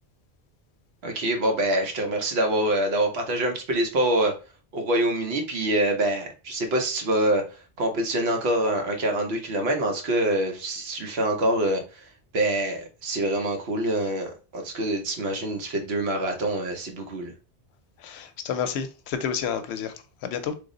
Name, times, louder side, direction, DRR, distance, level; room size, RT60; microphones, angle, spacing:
voice 1, 1.0-4.3 4.7-17.3, right 1 dB, 75° right, 1.1 m, -25 dB
voice 2, 18.0-20.5, left 7 dB, 80° left, 0.8 m, -30 dB
3.4 x 2.0 x 3.7 m
omnidirectional pair, 1.1 m